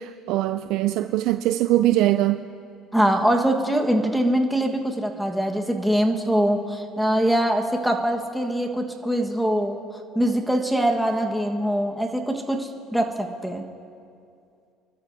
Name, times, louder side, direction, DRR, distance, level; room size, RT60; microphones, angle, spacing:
voice 1, 0.0-2.4, right 14 dB, 70° right, 9 dB, 0.4 m, -22 dB
voice 2, 2.9-9.8 10.1-13.6, right 1 dB, ahead, 1 dB, 1.4 m, -23 dB
27.0 x 12.5 x 2.7 m, 2.4 s
supercardioid pair, 105°, 0 cm